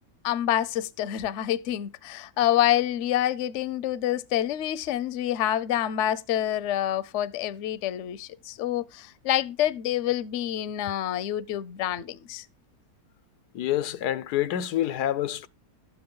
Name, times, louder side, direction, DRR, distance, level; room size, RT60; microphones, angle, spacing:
voice 1, 0.2-12.4, left 12 dB, 60° left, 0.9 m, -27 dB
voice 2, 13.5-15.5, left 12 dB, 85° left, 1.3 m, -27 dB
12.5 x 8.6 x 3.8 m
omnidirectional pair, 1.6 m